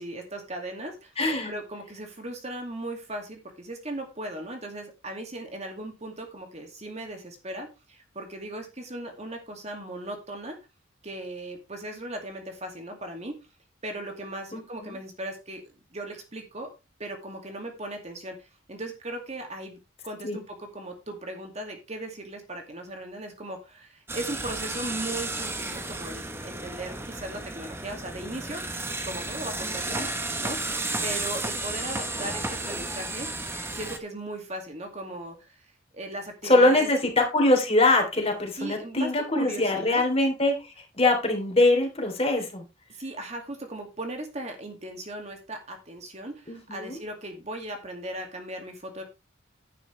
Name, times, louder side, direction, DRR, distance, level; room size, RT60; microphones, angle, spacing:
voice 1, 0.0-1.1 1.4-10.6 11.0-13.4 13.8-16.7 17.0-19.8 20.0-28.7 29.0-33.3 33.7-35.7 35.9-36.9 38.6-40.0 42.9-49.0, right 1 dB, 35° right, 3 dB, 2.4 m, -37 dB
voice 2, 1.2-1.5 14.5-15.0 20.2-20.4 29.6-30.1 36.4-42.6 46.5-47.0, left 2 dB, 30° left, 3 dB, 3.4 m, -23 dB
sound 1, 24.1-34.0, right 2 dB, 10° right, 1.1 m, -33 dB
11.0 x 9.8 x 3.3 m, 0.27 s
head